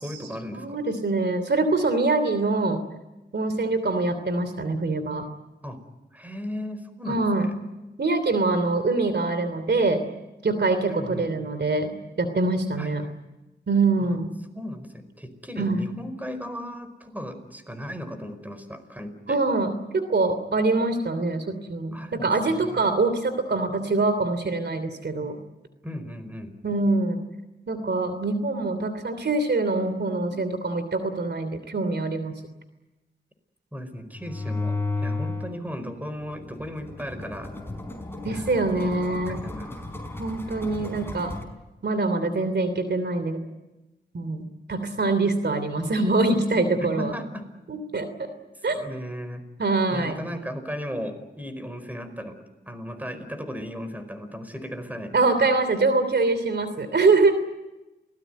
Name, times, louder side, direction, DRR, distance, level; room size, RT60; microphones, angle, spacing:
voice 1, 0.0-0.8 5.6-5.8 6.1-7.5 10.9-11.3 12.8-13.1 14.0-14.2 14.5-19.4 21.9-22.8 25.8-26.5 33.7-37.5 38.3-38.5 38.8-39.9 46.8-47.4 48.7-49.4 49.9-52.3 52.6-55.1, equal, 10° right, 9 dB, 4.9 m, -36 dB
voice 2, 0.5-2.8 3.3-5.3 7.1-7.5 8.0-10.0 10.4-13.0 13.7-14.3 15.6-15.9 19.3-25.4 26.6-27.2 27.7-32.3 38.2-39.4 40.2-41.3 41.8-43.4 44.1-47.1 47.7-48.1 48.6-48.8 49.6-50.2 55.1-57.3, right 3 dB, 65° right, 10 dB, 3.1 m, -24 dB
sound 1, 34.1-35.6 36.0-41.4, left 3 dB, 10° left, 5.3 m, -33 dB
29.0 x 19.0 x 9.3 m, 1.0 s
cardioid pair, 65°, 19 cm